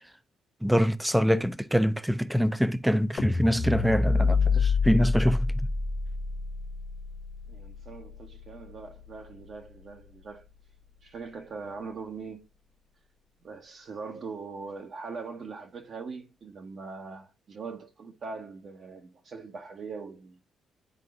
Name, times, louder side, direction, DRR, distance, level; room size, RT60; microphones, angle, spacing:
voice 1, 0.6-5.5, equal, 5° right, 0.5 m, -24 dB
sound 1, 3.2-9.5, left 4 dB, 35° left, 1.0 m, -28 dB
voice 2, 7.5-10.4 11.0-12.5 13.4-20.4, right 4 dB, 55° right, 1.0 m, -41 dB
10.5 x 3.8 x 2.4 m
cardioid pair, 90°, 0 cm